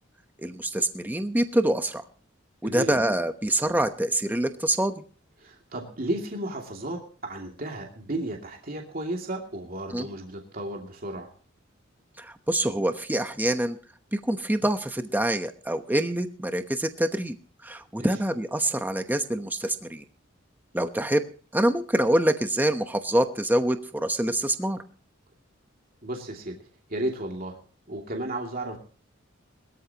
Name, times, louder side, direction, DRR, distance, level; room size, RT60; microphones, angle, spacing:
voice 1, 0.4-2.0 2.6-5.0 9.9-10.1 12.2-13.8 14.1-17.3 17.6-20.0 20.7-21.2 21.5-24.8, right 1 dB, 10° right, 8 dB, 0.9 m, -25 dB
voice 2, 2.6-3.0 5.4-11.3 18.0-18.1 26.0-26.6 26.9-27.6 27.9-28.8, right 1 dB, 45° right, 1 dB, 2.6 m, -33 dB
21.5 x 13.5 x 2.9 m, 0.40 s
head